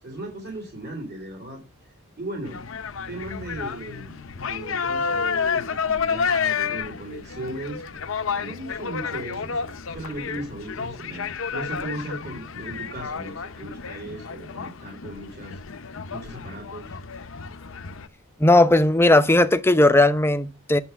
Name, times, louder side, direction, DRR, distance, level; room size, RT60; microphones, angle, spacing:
voice 1, 0.0-1.6 2.2-2.6 3.1-8.0 8.3-15.6 16.1-17.0, right 1 dB, 45° right, 3.2 m, -37 dB
sound 1, 2.4-18.1, left 6 dB, 60° left, 0.7 m, -30 dB
voice 2, 18.4-20.8, left 2 dB, 10° left, 0.7 m, -17 dB
9.6 x 7.0 x 6.8 m
head